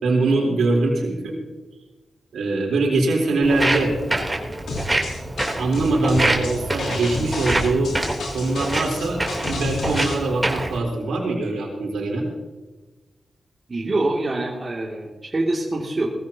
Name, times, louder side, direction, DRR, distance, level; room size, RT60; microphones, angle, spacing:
voice 1, 0.0-1.3 2.3-3.9 5.6-7.9 8.3-12.3, right 2 dB, 85° right, -1 dB, 3.9 m, -22 dB
Walk footsteps, 3.4-10.8, right 1 dB, 20° right, 3.4 m, -26 dB
sound 1, 4.7-10.2, left 2 dB, 80° left, 3.9 m, -30 dB
voice 2, 13.7-16.1, right 2 dB, 40° right, -3 dB, 2.6 m, -25 dB
20.5 x 15.0 x 2.9 m, 1.2 s
cardioid pair, 50°, 0 cm